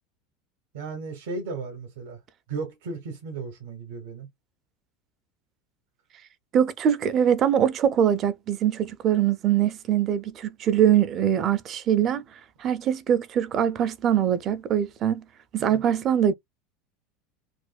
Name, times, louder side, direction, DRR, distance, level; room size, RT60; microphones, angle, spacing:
voice 1, 0.7-2.2 2.5-4.3 15.6-15.8, right 4 dB, 85° right, 1.5 m, -35 dB
voice 2, 6.5-12.2 12.6-15.2 15.5-16.3, right 9 dB, 30° right, 0.4 m, -23 dB
4.8 x 2.2 x 2.3 m
supercardioid pair, 155°, 0 cm